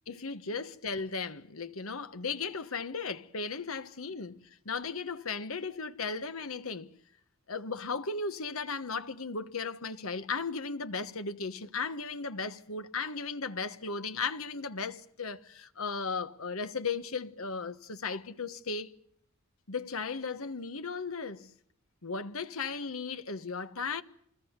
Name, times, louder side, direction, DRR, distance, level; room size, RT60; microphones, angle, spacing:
voice 1, 0.1-6.9 7.5-18.9 19.7-21.5 22.0-24.0, left 4 dB, 70° left, 1.3 m, -36 dB
27.5 x 20.5 x 8.1 m
head